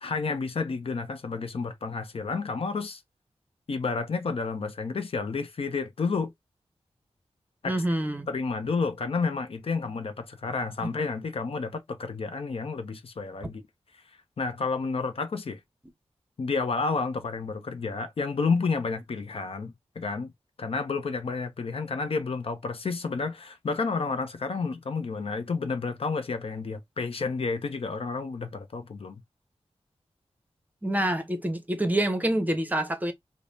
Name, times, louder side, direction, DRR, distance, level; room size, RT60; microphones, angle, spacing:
voice 1, 0.0-3.0 3.7-6.3 7.6-7.8 8.3-13.6 14.4-15.6 16.4-20.3 20.6-29.2, left 4 dB, 60° left, 0.6 m, -30 dB
voice 2, 7.6-8.3 10.8-10.9 30.8-33.1, right 1 dB, 15° right, 0.7 m, -27 dB
5.1 x 2.0 x 2.7 m
wide cardioid pair, 120°, 11 cm